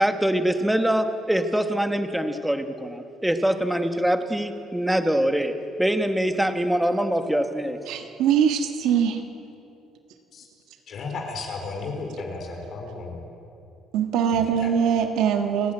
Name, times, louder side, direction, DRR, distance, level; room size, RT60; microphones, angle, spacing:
voice 1, 0.0-7.8, right 1 dB, 5° right, 7 dB, 1.1 m, -24 dB
voice 2, 7.9-9.2 13.9-15.7, right 8 dB, 80° right, 5 dB, 1.5 m, -22 dB
voice 3, 10.9-13.2 14.3-14.7, left 3 dB, 50° left, 2 dB, 3.9 m, -34 dB
29.5 x 10.0 x 8.9 m, 2.7 s
cardioid pair, 140°, 0 cm